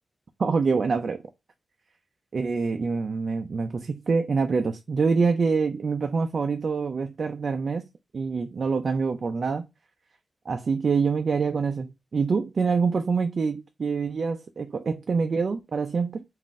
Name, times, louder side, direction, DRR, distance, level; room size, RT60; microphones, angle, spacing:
voice 1, 0.4-1.2 2.3-7.8 8.1-9.7 10.5-16.2, right 5 dB, 50° right, 0.4 m, -25 dB
3.8 x 2.5 x 3.6 m
wide cardioid pair, 165°, 0 cm